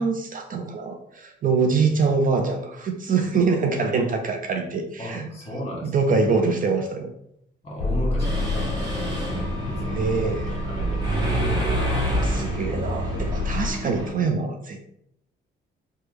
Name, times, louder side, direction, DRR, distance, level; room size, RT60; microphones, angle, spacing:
voice 1, 0.0-5.2 5.8-7.1 9.8-10.6 12.0-14.9, right 4 dB, 45° right, 4 dB, 0.4 m, -24 dB
voice 2, 5.0-6.2 7.6-11.1, equal, 30° left, -3 dB, 1.4 m, -35 dB
sound 1, 7.8-13.7, left 1 dB, 65° left, 0.5 m, -28 dB
Mechanisms, 8.2-14.1, equal, 20° right, 1.2 m, -29 dB
3.0 x 2.2 x 3.3 m, 0.73 s
cardioid pair, 90°, 20 cm